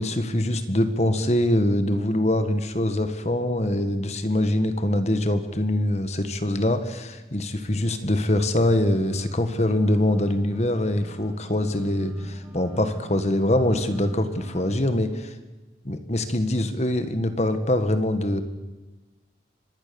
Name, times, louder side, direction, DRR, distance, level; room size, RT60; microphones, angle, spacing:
voice 1, 0.0-15.3 15.8-18.4, left 1 dB, 35° left, 9 dB, 1.7 m, -23 dB
sound 1, 8.8-14.7, right 1 dB, 5° right, 6.0 m, -44 dB
25.5 x 20.0 x 7.1 m, 1.2 s
head